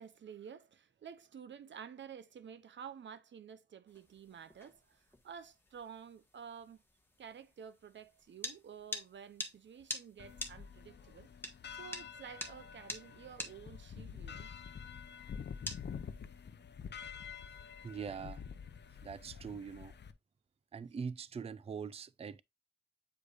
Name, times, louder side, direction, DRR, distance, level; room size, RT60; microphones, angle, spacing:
voice 1, 0.0-5.0 5.2-6.8 7.2-11.3 11.8-14.5, right 7 dB, 85° right, 0.6 m, -51 dB
sound 1, 3.9-16.5, left 2 dB, 10° left, 1.3 m, -48 dB
sound 2, 10.2-20.1, left 7 dB, 70° left, 0.6 m, -48 dB
voice 2, 17.8-18.4 19.0-19.9 20.7-22.4, right 6 dB, 35° right, 0.3 m, -43 dB
8.2 x 4.9 x 2.4 m
wide cardioid pair, 90°, 19 cm